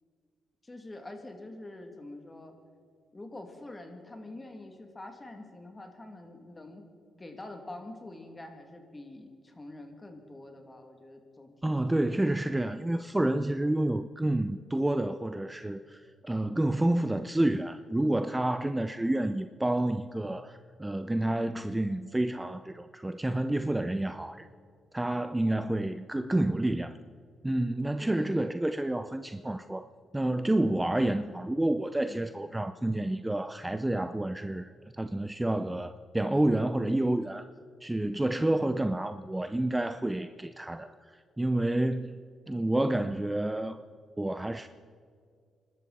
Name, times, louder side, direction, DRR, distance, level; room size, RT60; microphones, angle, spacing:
voice 1, 0.6-2.5 3.1-6.8 7.2-12.0 18.6-19.1 28.0-28.5 32.1-32.4 38.2-38.5, left 2 dB, 25° left, 4 dB, 2.6 m, -46 dB
voice 2, 11.6-24.5 24.9-27.0 27.4-29.8 30.1-37.5 37.8-42.2 42.5-43.8 44.2-44.7, right 1 dB, 15° right, 10 dB, 0.6 m, -29 dB
26.0 x 12.5 x 4.3 m, 2.1 s
cardioid pair, 70°, 0 cm